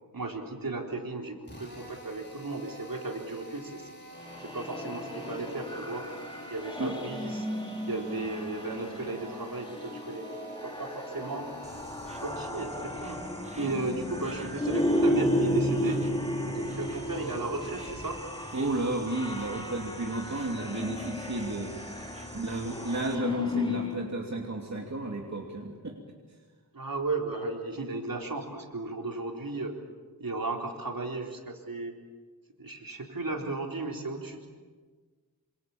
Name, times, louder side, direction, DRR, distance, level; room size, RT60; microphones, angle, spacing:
voice 1, 0.1-3.9 4.4-6.1 6.5-7.5 7.9-10.3 10.6-11.5 12.2-13.2 13.6-16.0 16.5-18.2 26.7-29.8 30.2-31.9 32.6-34.5, right 3 dB, 60° right, 1 dB, 4.1 m, -35 dB
Drill, 1.4-12.5, right 1 dB, 30° left, 5.8 m, -49 dB
sound 1, 4.2-24.0, left 1 dB, 15° left, 3.9 m, -33 dB
Insect, 11.6-23.2, right 1 dB, 15° right, 2.6 m, -47 dB
voice 2, 18.5-21.7 22.3-25.9, right 2 dB, 45° right, 0 dB, 2.9 m, -32 dB
27.5 x 26.5 x 7.3 m, 1.4 s
wide cardioid pair, 85°, 38 cm